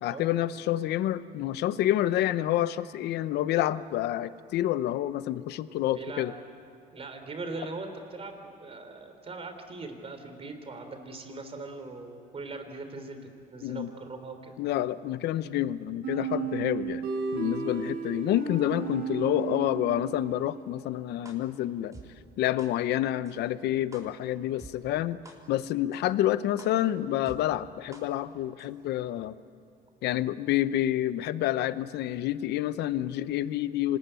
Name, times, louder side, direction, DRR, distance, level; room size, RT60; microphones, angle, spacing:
voice 1, 0.0-6.3 13.6-13.9 14.6-22.0 22.4-25.2 25.5-29.3 30.0-34.0, left 13 dB, 80° left, 15 dB, 0.8 m, -28 dB
voice 2, 5.7-6.3 6.9-13.2 13.5-14.6, right 3 dB, 35° right, 6 dB, 3.7 m, -40 dB
sound 1, 16.0-20.7, right 5 dB, 80° right, 6.0 m, -34 dB
sound 2, 21.2-21.3 21.9-22.0 22.6-22.7 23.3-23.4 23.9-24.0 24.6-24.7 25.2-25.3 25.9-26.0 26.6-26.7 27.3-27.4 27.9-28.0 28.6-28.7, right 2 dB, 20° right, 4.0 m, -46 dB
26.0 x 20.0 x 9.1 m, 2.5 s
cardioid pair, 110°, 17 cm